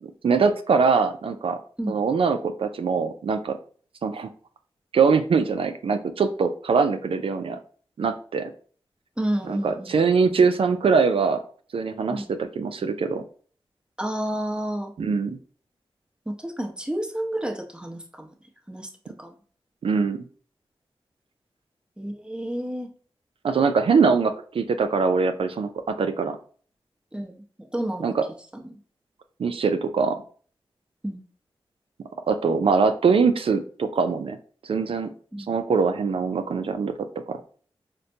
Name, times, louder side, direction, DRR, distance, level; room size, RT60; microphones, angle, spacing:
voice 1, 0.0-1.6 1.9-3.6 4.0-4.3 4.9-7.6 8.0-8.5 9.5-11.4 11.7-13.2 15.0-15.4 19.8-20.2 23.4-26.4 28.0-28.2 29.4-30.2 32.3-34.4 34.6-35.1 35.5-37.4, right 5 dB, 70° right, 8 dB, 0.4 m, -22 dB
voice 2, 9.2-10.0 12.1-12.3 14.0-14.9 16.3-19.3 22.0-22.9 27.1-28.2 28.5-28.8 31.0-31.2 35.3-35.5, right 1 dB, 10° right, 3 dB, 0.8 m, -31 dB
4.0 x 2.2 x 2.7 m, 0.44 s
cardioid pair, 45°, 10 cm